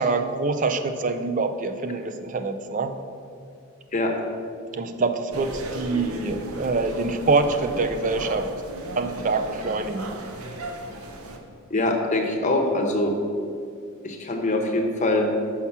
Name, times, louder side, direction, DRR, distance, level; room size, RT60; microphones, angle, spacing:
voice 1, 0.0-2.9 4.7-8.5 9.0-10.1, right 3 dB, 35° right, 8 dB, 0.4 m, -25 dB
sound 1, 5.3-11.4, right 1 dB, 75° right, 0.8 m, -35 dB
voice 2, 11.7-13.1 14.0-15.3, left 2 dB, 35° left, 2 dB, 0.8 m, -23 dB
6.0 x 5.7 x 5.6 m, 2.4 s
head